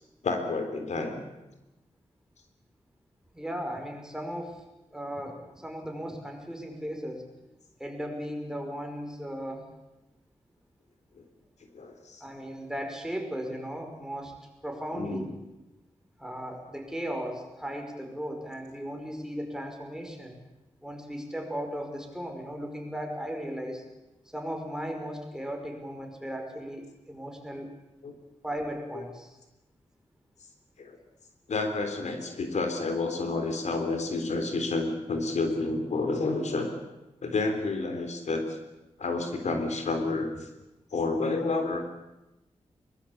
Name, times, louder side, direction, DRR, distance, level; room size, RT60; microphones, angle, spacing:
voice 1, 0.2-1.2 11.7-12.2 14.9-15.3 28.0-28.1 30.8-31.0 31.5-36.8 37.2-38.6 39.0-40.5 40.9-41.8, left 3 dB, 90° left, 5 dB, 3.6 m, -30 dB
voice 2, 3.3-4.6 4.9-7.3 7.8-9.7 12.2-14.3 14.6-15.3 16.2-20.4 20.8-23.8 24.3-27.7 28.4-29.4, equal, 5° right, 3 dB, 5.3 m, -36 dB
23.0 x 20.5 x 8.6 m, 0.99 s
wide cardioid pair, 105°, 12 cm